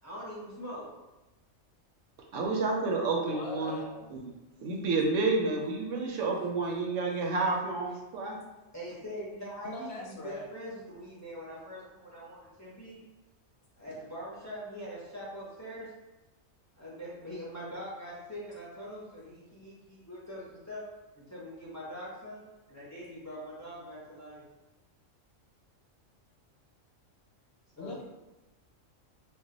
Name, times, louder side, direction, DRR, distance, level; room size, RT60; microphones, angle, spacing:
voice 1, 0.0-0.9 3.1-3.3 8.7-13.0 13.8-15.9 16.8-20.8 21.2-22.4 22.7-24.4 27.8-28.0, equal, 20° left, -7 dB, 0.5 m, -43 dB
voice 2, 2.3-3.8 4.1-4.3 4.6-8.4, right 3 dB, 75° right, 0 dB, 0.9 m, -30 dB
voice 3, 3.3-4.0 9.6-10.5 12.0-12.2 12.7-12.9 27.8-28.0, left 3 dB, 65° left, -2 dB, 0.8 m, -42 dB
2.3 x 2.1 x 3.8 m, 1.0 s
omnidirectional pair, 1.3 m